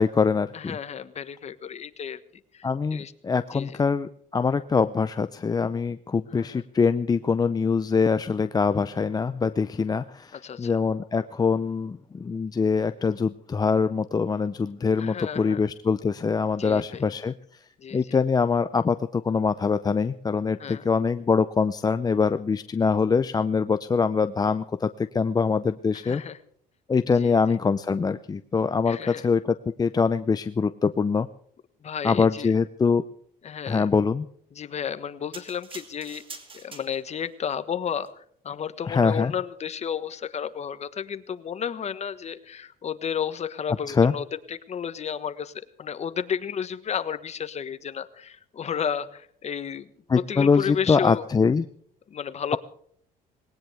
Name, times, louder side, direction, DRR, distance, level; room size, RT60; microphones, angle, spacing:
voice 1, 0.0-0.8 2.6-17.3 17.9-26.2 26.9-31.3 32.0-33.0 33.7-34.3 38.9-39.3 43.9-44.1 50.1-51.7, left 5 dB, 25° left, 11 dB, 0.6 m, -24 dB
voice 2, 0.5-2.2 2.5-3.1 3.5-3.8 6.3-6.6 10.3-10.8 15.0-15.6 16.6-17.0 17.8-18.1 20.6-20.8 25.9-26.4 27.2-27.4 28.9-29.3 31.8-32.5 33.4-33.9 34.5-36.2 36.5-45.5 45.8-51.2 52.1-52.6, left 8 dB, 40° left, 12 dB, 1.3 m, -32 dB
sound 1, 35.3-37.3 37.9-38.1, right 4 dB, 30° right, 2.6 m, -44 dB
20.0 x 18.5 x 3.4 m, 0.63 s
cardioid pair, 110°, 17 cm